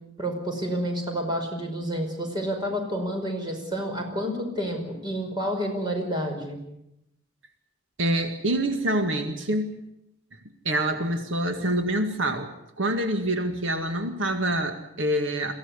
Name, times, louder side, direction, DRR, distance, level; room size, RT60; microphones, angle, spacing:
voice 1, 0.2-6.6, equal, 25° right, 2 dB, 5.3 m, -29 dB
voice 2, 8.0-9.7 10.7-15.5, right 1 dB, 75° right, 6 dB, 1.9 m, -26 dB
23.0 x 16.0 x 9.7 m, 0.81 s
head